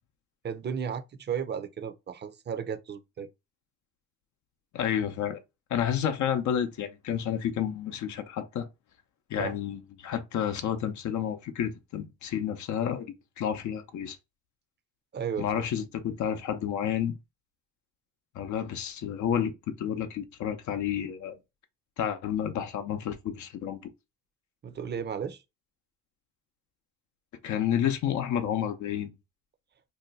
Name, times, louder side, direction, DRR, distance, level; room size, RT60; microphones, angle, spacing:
voice 1, 0.4-3.3 9.4-9.5 15.1-15.5 24.6-25.4, right 7 dB, 35° right, 0.5 m, -34 dB
voice 2, 4.7-5.4 5.7-8.7 9.3-14.2 15.4-17.2 18.3-19.5 19.8-21.4 22.0-23.8 27.4-29.1, left 9 dB, 70° left, 0.6 m, -30 dB
2.7 x 2.2 x 3.9 m
cardioid pair, 90°, 30 cm